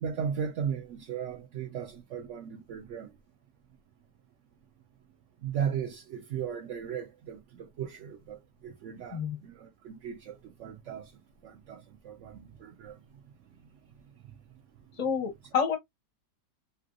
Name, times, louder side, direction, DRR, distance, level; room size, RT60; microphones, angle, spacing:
voice 1, 0.0-3.1 5.4-11.1 11.4-13.0, right 8 dB, 80° right, 0.6 m, -36 dB
voice 2, 15.0-15.8, left 6 dB, 40° left, 0.6 m, -28 dB
3.3 x 2.6 x 2.5 m
omnidirectional pair, 1.8 m